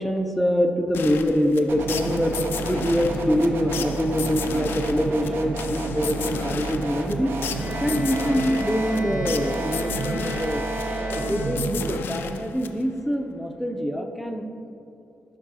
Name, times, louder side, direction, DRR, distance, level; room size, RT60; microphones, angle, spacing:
voice 1, 0.0-2.3 2.6-7.4 7.8-10.6 11.0-14.5, equal, ahead, 5 dB, 0.4 m, -25 dB
sound 1, 0.9-13.1, left 7 dB, 80° left, 0.3 m, -35 dB
sound 2, 1.7-12.0, right 3 dB, 80° right, 0.5 m, -31 dB
Bowed string instrument, 7.5-12.0, equal, 35° right, 1.1 m, -33 dB
6.1 x 4.8 x 4.0 m, 2.7 s
wide cardioid pair, 120°, 4 cm